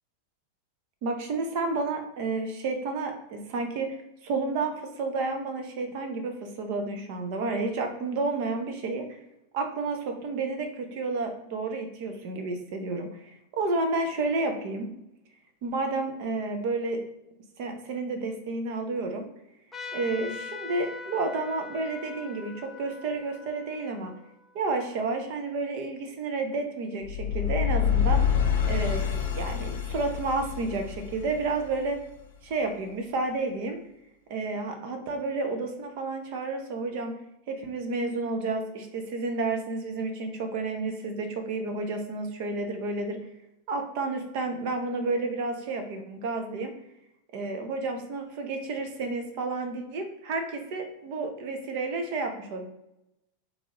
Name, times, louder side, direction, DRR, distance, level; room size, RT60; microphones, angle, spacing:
voice 1, 1.0-9.1 9.5-14.9 15.6-17.0 17.6-19.3 19.9-24.1 24.5-28.2 28.7-32.0 32.4-33.8 34.3-37.1 37.5-43.2 43.7-46.7 47.3-52.7, right 3 dB, 45° right, 5 dB, 0.8 m, -31 dB
Trumpet, 19.7-24.8, left 5 dB, 5° left, 0.6 m, -42 dB
sound 1, 27.0-32.1, left 8 dB, 60° left, 0.9 m, -27 dB
3.7 x 3.2 x 3.9 m, 0.87 s
figure-of-eight pair, 90°, 0 cm